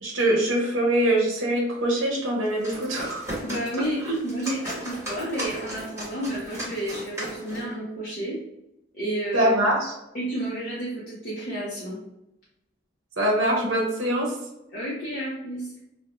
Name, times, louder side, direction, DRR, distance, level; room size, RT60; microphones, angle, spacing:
voice 1, 0.0-3.2 9.3-9.9 13.2-14.3, right 1 dB, 80° right, -1 dB, 0.6 m, -23 dB
sound 1, 2.4-7.7, equal, 15° right, 1.1 m, -36 dB
voice 2, 3.4-8.4 8.9-9.5 10.1-12.0 14.7-15.7, right 1 dB, 45° left, -6 dB, 0.5 m, -31 dB
2.4 x 2.0 x 2.8 m, 0.90 s
head